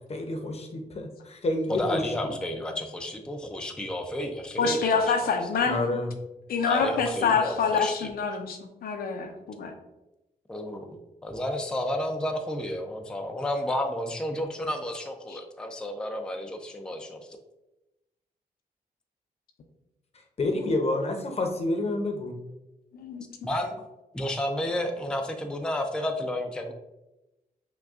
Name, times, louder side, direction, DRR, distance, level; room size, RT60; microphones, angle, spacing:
voice 1, 0.1-2.3 5.6-6.1 20.4-22.4, left 2 dB, 40° left, 3 dB, 0.7 m, -29 dB
voice 2, 1.7-5.0 6.6-8.1 10.5-17.4 23.4-23.9 24.1-26.7, left 1 dB, 5° left, 4 dB, 0.4 m, -31 dB
voice 3, 4.6-6.0 6.5-9.7 15.3-15.4 22.9-23.2, left 5 dB, 75° left, 4 dB, 0.5 m, -26 dB
5.9 x 2.2 x 2.4 m, 0.97 s
cardioid pair, 90°, 16 cm